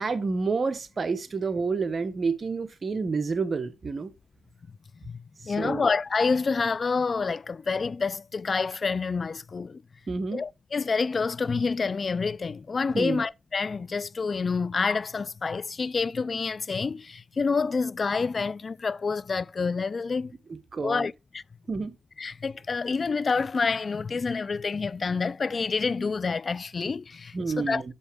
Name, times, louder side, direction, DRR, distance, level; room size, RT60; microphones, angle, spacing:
voice 1, 0.0-4.1 5.4-5.9 10.1-10.4 12.9-13.2 20.5-21.1 21.7-22.0 27.3-27.9, right 4 dB, 50° right, 1.2 m, -29 dB
voice 2, 5.4-9.8 10.3-20.3 20.8-21.4 22.2-27.9, left 4 dB, 50° left, 0.3 m, -28 dB
7.0 x 5.4 x 3.6 m
supercardioid pair, 50°, 0 cm